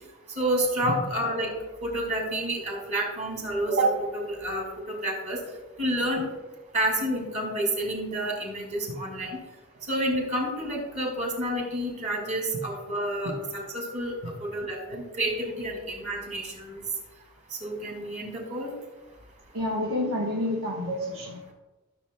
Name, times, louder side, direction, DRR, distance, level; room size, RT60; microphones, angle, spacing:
voice 1, 0.4-1.5 1.8-5.4 5.8-6.3 6.7-9.3 9.9-14.1 14.4-16.8 17.6-18.7, right 1 dB, 35° right, 0 dB, 2.3 m, -29 dB
voice 2, 19.5-21.5, left 1 dB, 80° right, -2 dB, 1.3 m, -29 dB
13.5 x 7.2 x 2.3 m, 1.1 s
head